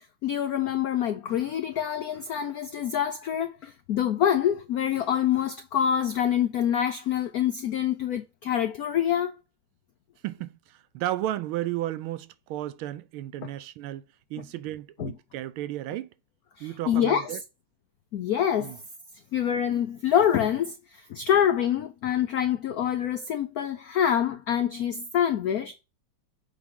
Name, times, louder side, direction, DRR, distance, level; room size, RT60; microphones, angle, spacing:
voice 1, 0.2-9.4 15.0-15.1 16.6-17.3 18.1-18.8 19.3-25.8, left 9 dB, 85° left, 0.8 m, -26 dB
voice 2, 10.2-14.0 14.3-16.1 16.6-17.4 18.6-18.8, right 14 dB, 85° right, 1.4 m, -33 dB
7.1 x 4.9 x 3.7 m
omnidirectional pair, 2.3 m